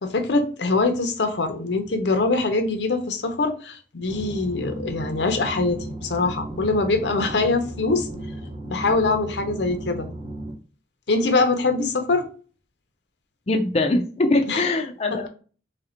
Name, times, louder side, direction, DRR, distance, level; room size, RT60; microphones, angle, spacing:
voice 1, 0.0-8.1 8.7-10.1 11.1-12.3 14.5-14.6, left 3 dB, 80° left, 0.7 m, -23 dB
sound 1, 4.1-10.5, right 1 dB, 30° right, 0.8 m, -35 dB
voice 2, 13.5-15.3, left 2 dB, 35° left, 0.4 m, -22 dB
3.3 x 2.5 x 4.3 m
head